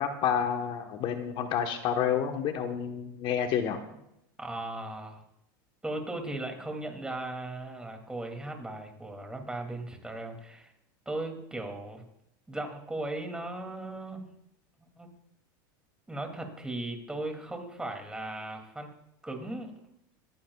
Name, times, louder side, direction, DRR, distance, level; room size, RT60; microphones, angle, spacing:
voice 1, 0.0-3.8, left 8 dB, 50° left, 6 dB, 1.3 m, -29 dB
voice 2, 4.4-5.2 5.8-10.7 11.1-12.0 12.5-14.2 15.0-15.1 16.1-18.9 19.2-19.7, right 2 dB, 5° right, 3 dB, 2.7 m, -37 dB
23.0 x 15.0 x 2.4 m, 0.80 s
supercardioid pair, 110°, 11 cm